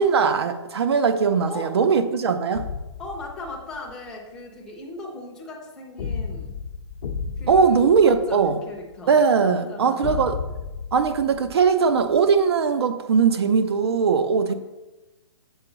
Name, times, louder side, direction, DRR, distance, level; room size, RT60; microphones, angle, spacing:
voice 1, 0.0-2.7 7.5-8.6 9.1-10.4 10.9-14.5, right 5 dB, 60° right, 9 dB, 0.5 m, -20 dB
Explosion Distant, 2.5-3.9 6.0-8.9 10.0-12.2, left 5 dB, 50° left, 0.7 m, -33 dB
voice 2, 3.0-6.6 7.4-8.4 8.7-10.3 14.5-14.6, left 2 dB, 5° left, -3 dB, 0.6 m, -38 dB
7.1 x 4.5 x 3.9 m, 1.1 s
hypercardioid pair, 170°, 15 cm